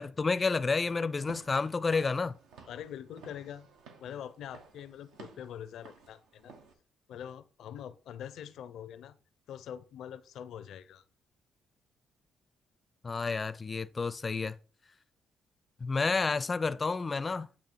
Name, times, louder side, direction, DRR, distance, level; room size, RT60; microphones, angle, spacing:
voice 1, 0.0-2.4 13.0-14.6 15.8-17.5, left 4 dB, 30° left, 0.4 m, -30 dB
Walk footsteps / Siren, 1.1-6.7, right 5 dB, 90° right, 1.1 m, -54 dB
voice 2, 2.7-3.7 4.0-6.5 7.1-9.2 9.5-11.0, left 9 dB, 75° left, 0.5 m, -44 dB
8.3 x 2.8 x 4.4 m
cardioid pair, 90°, 0 cm